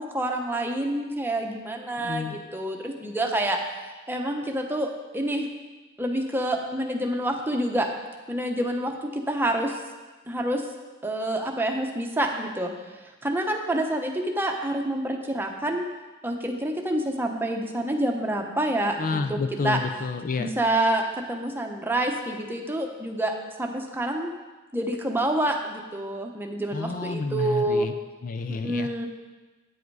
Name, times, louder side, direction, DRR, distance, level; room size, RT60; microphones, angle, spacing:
voice 1, 0.0-3.6 4.1-5.5 6.0-7.9 8.3-9.7 10.3-10.6 11.0-12.7 13.2-15.8 16.2-19.4 19.6-19.8 20.4-23.3 23.6-24.3 24.7-27.9 28.5-29.1, right 1 dB, 10° right, 2 dB, 0.9 m, -27 dB
voice 2, 2.0-2.4 19.0-20.5 26.7-27.9 28.2-28.9, left 4 dB, 40° left, 8 dB, 0.4 m, -29 dB
9.3 x 7.8 x 4.7 m, 1.2 s
head